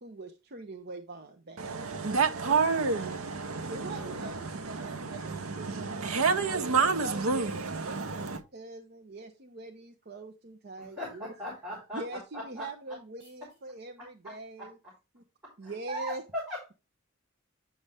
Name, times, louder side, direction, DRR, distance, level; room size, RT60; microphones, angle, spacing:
voice 1, 0.0-1.9 3.7-6.0 6.8-7.5 7.8-11.3 11.9-14.8 15.6-16.2, right 2 dB, 45° right, 0.7 m, -43 dB
voice 2, 1.6-8.4, right 4 dB, 80° right, 0.7 m, -29 dB
voice 3, 10.8-12.0 12.3-12.7 14.0-14.3 14.6-14.7 15.9-16.7, equal, 10° right, 4.0 m, -39 dB
8.6 x 5.4 x 3.4 m
head